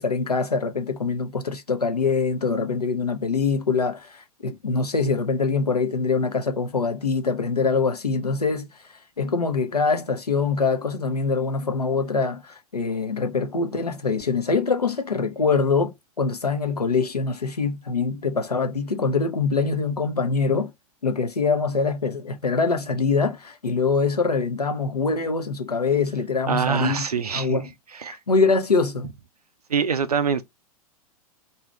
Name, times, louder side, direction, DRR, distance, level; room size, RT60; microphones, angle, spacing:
voice 1, 0.0-20.7 21.0-27.0 27.3-27.7 28.1-29.1, left 4 dB, 85° left, 0.6 m, -24 dB
voice 2, 26.5-27.6 28.0-28.2 29.7-30.4, right 6 dB, 80° right, 0.4 m, -24 dB
2.6 x 2.3 x 3.2 m
figure-of-eight pair, 95°, 19 cm